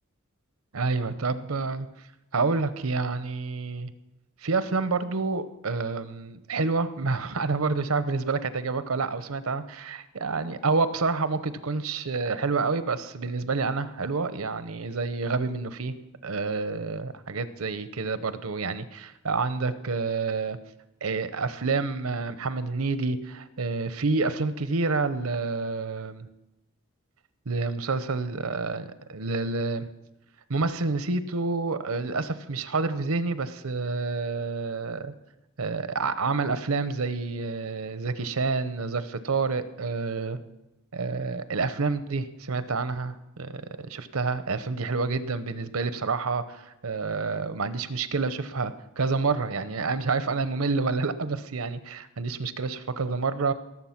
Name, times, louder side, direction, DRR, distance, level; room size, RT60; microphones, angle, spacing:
voice 1, 0.7-1.9 2.3-3.9 4.4-15.9 16.2-20.6 21.0-26.3 27.5-29.9 30.5-35.1 35.6-40.4 40.9-53.5, right 4 dB, 80° right, 12 dB, 0.8 m, -28 dB
18.0 x 7.6 x 5.9 m, 0.95 s
head